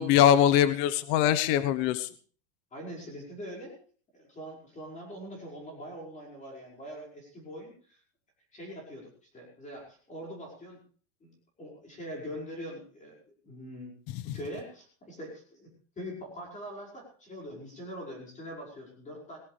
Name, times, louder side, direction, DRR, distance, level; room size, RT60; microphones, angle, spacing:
voice 1, 0.0-2.1 14.1-14.4, left 10 dB, 45° left, 14 dB, 1.1 m, -23 dB
voice 2, 2.7-3.8 4.1-8.0 8.5-9.1 9.3-10.8 11.2-11.3 11.6-14.0 14.2-15.7 16.0-19.4, equal, 20° left, -1 dB, 5.4 m, -43 dB
19.5 x 15.0 x 3.3 m, 0.42 s
supercardioid pair, 145°, 40 cm